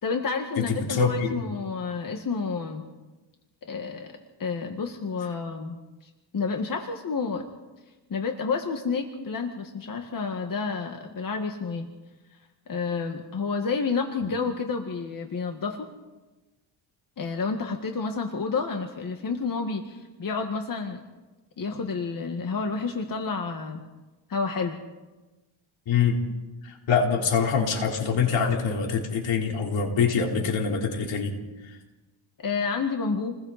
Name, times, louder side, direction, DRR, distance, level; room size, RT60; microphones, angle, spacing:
voice 1, 0.0-2.9 3.6-4.1 4.4-5.8 6.3-7.5 8.1-11.9 12.7-15.9 17.2-21.0 21.6-23.8 24.3-24.8 32.4-33.3, left 4 dB, 45° left, 4 dB, 1.9 m, -30 dB
voice 2, 0.6-1.4 14.2-14.3 25.9-26.2 26.6-31.3, left 6 dB, 70° left, 1 dB, 4.0 m, -24 dB
29.0 x 21.0 x 4.3 m, 1.1 s
cardioid pair, 95°, 47 cm